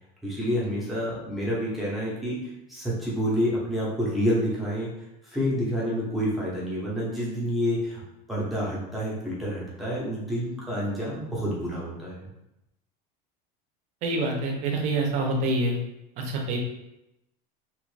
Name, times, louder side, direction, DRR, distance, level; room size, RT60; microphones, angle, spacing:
voice 1, 0.2-4.9 5.2-8.0 8.3-12.3, equal, ahead, -7 dB, 0.7 m, -28 dB
voice 2, 14.0-15.8 16.2-16.6, right 2 dB, 35° right, 1 dB, 0.6 m, -26 dB
3.0 x 2.5 x 3.2 m, 0.88 s
cardioid pair, 180°, 20 cm